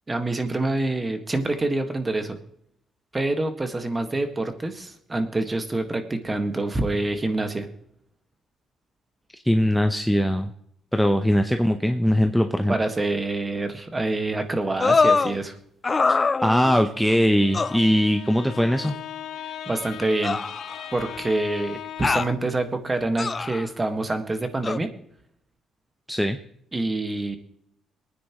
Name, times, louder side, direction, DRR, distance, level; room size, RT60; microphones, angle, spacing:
voice 1, 0.1-2.4 3.1-7.7 12.7-15.6 19.7-20.4 20.9-24.9 26.7-27.4, right 2 dB, 20° right, 7 dB, 1.7 m, -26 dB
voice 2, 9.4-10.5 10.9-12.7 16.4-18.9 26.1-26.4, equal, ahead, 6 dB, 0.8 m, -21 dB
sound 1, 14.8-15.4 15.8-16.9 17.5-17.8 18.8-18.9 20.2-21.1 22.0-22.3 23.2-23.7 24.6-24.8, left 4 dB, 30° left, 0.4 m, -23 dB
Bowed string instrument, 17.3-22.6, left 10 dB, 70° left, 0.9 m, -38 dB
23.0 x 9.7 x 3.1 m, 0.70 s
cardioid pair, 90°, 0 cm